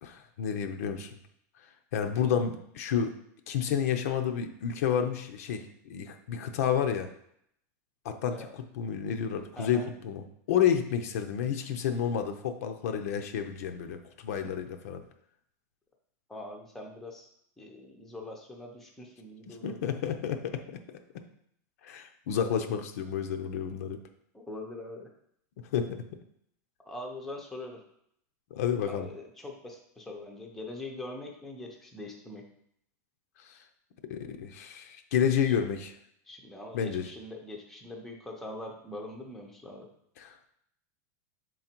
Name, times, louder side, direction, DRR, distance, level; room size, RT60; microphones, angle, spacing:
voice 1, 0.0-1.2 1.9-3.1 3.5-7.1 8.0-15.1 19.5-20.8 21.8-24.0 25.7-26.0 28.5-29.1 33.4-33.6 34.1-35.9 36.7-37.1 40.2-40.5, left 8 dB, 60° left, 7 dB, 0.7 m, -30 dB
voice 2, 9.6-9.9 16.3-17.3 17.6-19.8 24.3-25.1 26.9-27.8 28.9-32.4 35.5-35.6 36.3-39.9, left 2 dB, 5° left, 0 dB, 0.7 m, -42 dB
6.4 x 3.9 x 4.4 m, 0.71 s
supercardioid pair, 170°, 9 cm